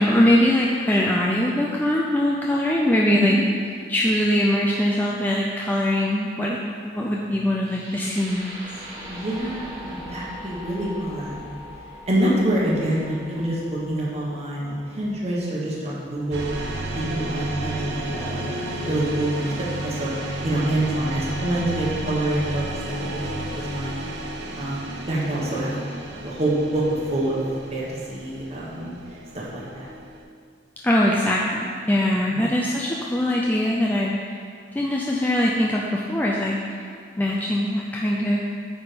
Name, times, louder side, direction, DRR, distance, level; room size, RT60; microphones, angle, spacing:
voice 1, 0.0-3.4 3.9-6.6 6.8-8.6 30.8-34.3 34.8-36.8 37.2-38.4, left 1 dB, 10° left, -3 dB, 0.4 m, -22 dB
sound 1, 7.6-15.7, equal, 20° right, 1.6 m, -41 dB
voice 2, 9.1-11.5 12.1-16.5 16.9-19.5 19.8-20.1 20.4-22.6 23.1-24.0 24.5-25.7 26.2-27.4 27.7-28.9 29.3-29.9 32.3-32.5, right 1 dB, 35° right, -6 dB, 1.3 m, -26 dB
sound 2, 16.3-30.2, right 1 dB, 70° right, 0.8 m, -32 dB
8.9 x 3.6 x 5.1 m, 2.3 s
head